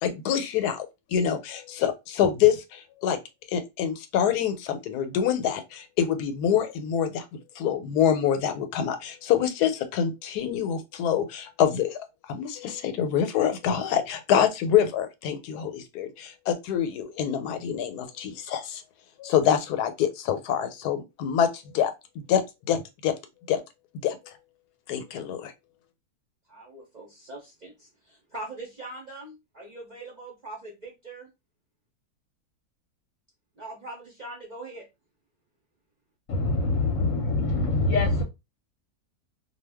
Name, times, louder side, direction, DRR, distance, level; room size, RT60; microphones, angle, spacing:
voice 1, 0.0-3.2 3.5-7.2 7.6-18.8 19.2-23.2 23.5-23.6 24.0-24.3 24.9-25.5, left 9 dB, 90° left, 1.1 m, -26 dB
voice 2, 26.5-31.3 33.6-34.9, right 2 dB, 50° right, 0.5 m, -42 dB
voice 3, 36.3-38.2, left 2 dB, 65° left, 0.9 m, -24 dB
2.4 x 2.2 x 3.3 m
omnidirectional pair, 1.6 m